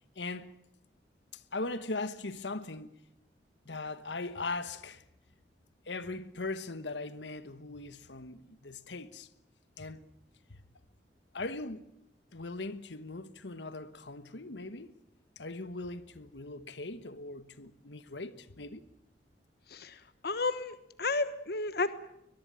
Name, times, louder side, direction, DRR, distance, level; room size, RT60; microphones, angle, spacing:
voice 1, 0.1-0.6 1.3-2.9 3.6-5.0 5.9-9.3 9.8-10.0 10.5-10.6 11.3-11.8 12.3-14.9 15.4-18.8, left 3 dB, 85° left, 1.4 m, -40 dB
voice 2, 19.7-22.0, left 3 dB, 60° left, 1.2 m, -33 dB
23.0 x 21.5 x 9.0 m
head